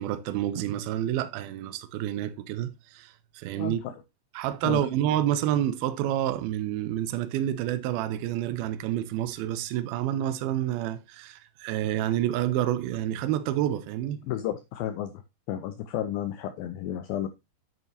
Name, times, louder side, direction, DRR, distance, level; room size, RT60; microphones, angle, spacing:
voice 1, 0.0-3.8 4.3-14.2, right 12 dB, 80° right, 2.2 m, -28 dB
voice 2, 3.6-3.9 4.6-4.8 14.3-15.2 15.5-17.3, left 11 dB, 85° left, 2.1 m, -32 dB
9.1 x 8.6 x 2.7 m
omnidirectional pair, 5.0 m